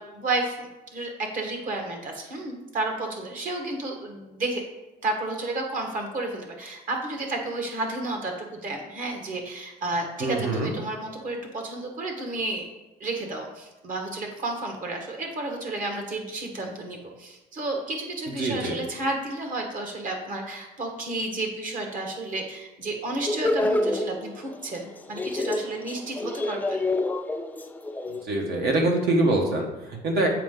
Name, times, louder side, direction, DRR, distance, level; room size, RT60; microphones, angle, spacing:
voice 1, 0.0-4.6 5.0-12.7 13.0-26.9, right 2 dB, 50° right, 2 dB, 1.5 m, -32 dB
voice 2, 10.2-10.7 18.4-18.8 28.3-30.3, right 2 dB, 70° right, 1 dB, 1.5 m, -24 dB
sound 1, 23.2-24.8 25.1-28.2, left 2 dB, 10° left, 0.4 m, -27 dB
7.4 x 4.7 x 3.8 m, 1.0 s
cardioid pair, 110°, 17 cm